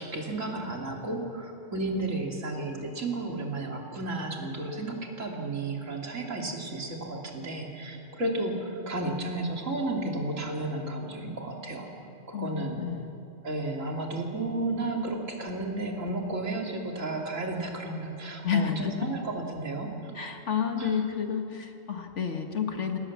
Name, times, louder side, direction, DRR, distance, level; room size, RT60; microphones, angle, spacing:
voice 1, 0.0-11.9 12.3-12.8 13.4-20.2 20.7-21.0, right 2 dB, 85° right, 0 dB, 3.2 m, -33 dB
voice 2, 12.3-13.2 18.4-19.1 20.2-23.0, left 7 dB, 65° left, 4 dB, 1.9 m, -30 dB
27.5 x 18.5 x 7.3 m, 2.7 s
omnidirectional pair, 1.3 m